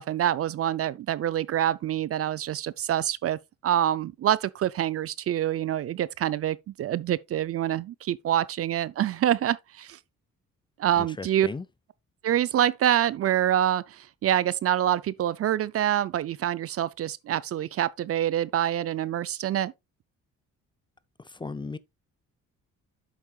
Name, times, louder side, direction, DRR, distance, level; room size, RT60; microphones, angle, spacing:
voice 1, 0.0-10.0 10.8-11.5 12.2-19.7, right 11 dB, 50° right, 0.4 m, -26 dB
voice 2, 11.0-11.6 21.2-21.8, left 3 dB, 15° left, 0.5 m, -36 dB
8.5 x 7.4 x 2.3 m
cardioid pair, 90°, 30 cm